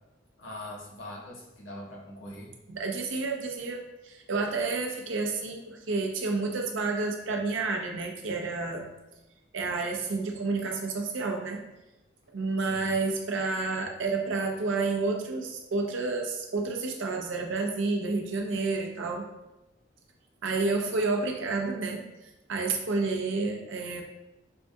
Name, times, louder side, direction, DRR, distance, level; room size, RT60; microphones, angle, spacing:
voice 1, 0.4-2.5 12.7-12.9, left 1 dB, 90° left, -2 dB, 1.0 m, -42 dB
voice 2, 2.7-8.9 9.5-11.6 12.3-19.3 20.4-24.0, right 3 dB, 85° right, 2 dB, 0.6 m, -30 dB
5.3 x 2.7 x 2.3 m, 0.97 s
head